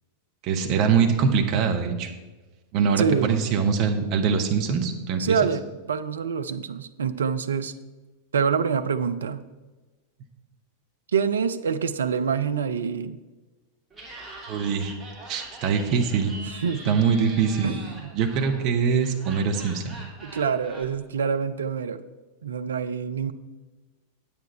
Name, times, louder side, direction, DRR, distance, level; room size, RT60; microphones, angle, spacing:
voice 1, 0.4-2.1 2.7-5.4 14.5-14.9 15.3-16.3 16.8-17.8 18.1-20.0, right 6 dB, 40° right, 4 dB, 1.2 m, -23 dB
voice 2, 3.0-3.4 5.2-7.7 8.3-9.4 11.1-13.2 16.6-16.9 17.6-18.1 20.2-22.0 22.4-23.3, right 6 dB, 70° right, 9 dB, 0.5 m, -26 dB
Laughter, 13.9-20.8, right 2 dB, 10° right, 2.6 m, -43 dB
9.2 x 8.8 x 4.4 m, 1.2 s
figure-of-eight pair, 90°, 0 cm